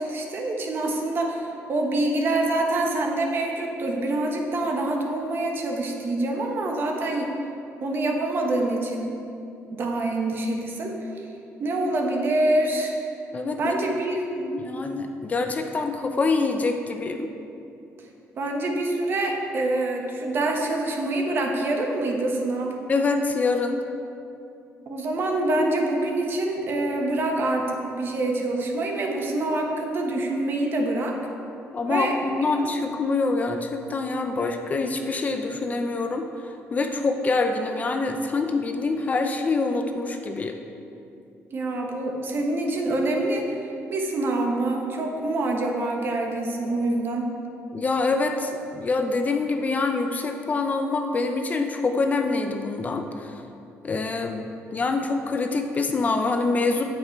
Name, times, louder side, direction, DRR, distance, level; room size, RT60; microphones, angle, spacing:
voice 1, 0.0-7.3 7.8-9.1 9.7-11.1 11.6-12.9 13.6-14.4 18.4-22.7 24.9-31.2 31.9-32.1 32.5-32.6 41.5-43.6 43.9-47.3, right 2 dB, 45° right, 1 dB, 1.3 m, -26 dB
voice 2, 13.3-13.7 14.4-17.3 22.9-23.8 31.7-40.5 47.7-53.3 53.8-56.8, left 3 dB, 30° left, 5 dB, 0.6 m, -25 dB
8.3 x 8.0 x 4.6 m, 2.7 s
cardioid pair, 130°, 5 cm